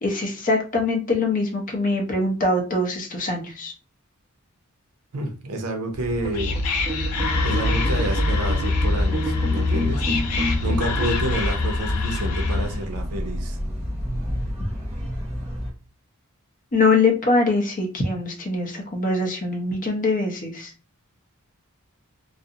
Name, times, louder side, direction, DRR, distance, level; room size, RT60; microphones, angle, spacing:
voice 1, 0.0-3.7 16.7-20.7, left 3 dB, 35° left, 2 dB, 0.6 m, -23 dB
voice 2, 5.1-6.6 7.4-10.1 10.6-13.6, right 1 dB, 90° right, 5 dB, 0.6 m, -29 dB
Whispering, 5.9-12.9, left 3 dB, 90° left, 0.5 m, -25 dB
sound 1, 6.2-11.3, right 1 dB, 20° right, 0.6 m, -31 dB
sound 2, 7.1-15.7, equal, 5° left, 1.0 m, -29 dB
2.4 x 2.0 x 2.6 m, 0.34 s
head